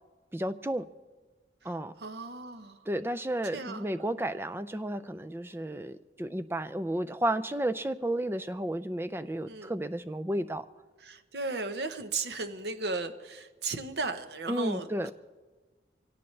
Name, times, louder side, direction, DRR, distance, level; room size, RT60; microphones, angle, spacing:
voice 1, 0.3-0.9 1.6-1.9 2.9-10.6 14.5-15.1, right 1 dB, 15° right, 11 dB, 0.4 m, -32 dB
voice 2, 1.6-2.8 3.5-3.9 9.5-9.7 11.0-15.1, right 3 dB, 70° right, 9 dB, 0.9 m, -36 dB
24.0 x 18.0 x 3.3 m, 1.3 s
head